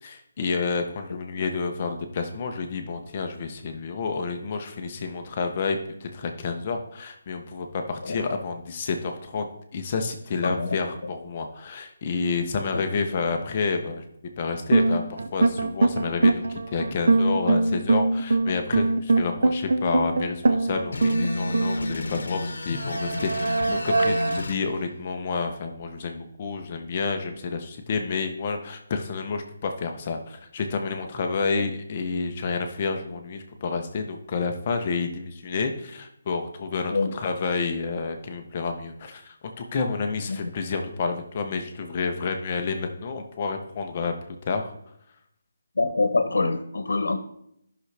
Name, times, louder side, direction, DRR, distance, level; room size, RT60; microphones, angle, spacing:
voice 1, 0.0-14.0 14.4-44.7, left 4 dB, 25° left, 4 dB, 0.7 m, -29 dB
sound 1, 14.7-22.2 22.8-24.4, right 2 dB, 55° right, 0.7 m, -22 dB
sound 2, 20.9-24.6, left 2 dB, 55° left, 1.0 m, -32 dB
voice 2, 45.8-47.2, left 3 dB, 85° left, 9 dB, 0.9 m, -25 dB
12.5 x 5.9 x 3.3 m, 0.76 s
hypercardioid pair, 180°, 0 cm